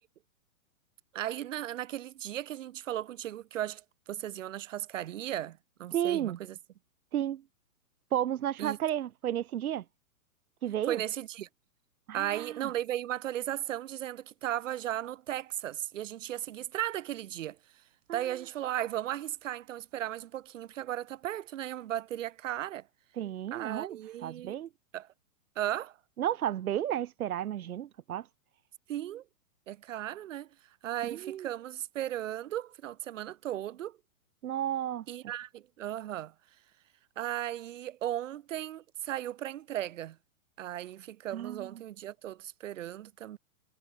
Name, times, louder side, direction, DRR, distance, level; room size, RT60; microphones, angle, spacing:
voice 1, 1.1-6.6 8.6-8.8 10.9-11.5 12.1-17.6 18.1-22.9 23.5-24.6 24.9-25.1 25.6-26.0 28.9-29.2 29.7-30.5 30.8-34.0 35.1-36.3 37.2-40.2 40.6-43.4, right 12 dB, 60° right, 2.1 m, -36 dB
voice 2, 5.9-6.4 7.1-7.4 8.1-9.8 10.6-11.0 12.1-12.7 18.1-18.2 23.2-24.7 26.2-28.3 31.0-31.5 34.4-35.0 41.3-41.8, right 11 dB, 80° right, 1.2 m, -32 dB
hypercardioid pair, 160°, 44 cm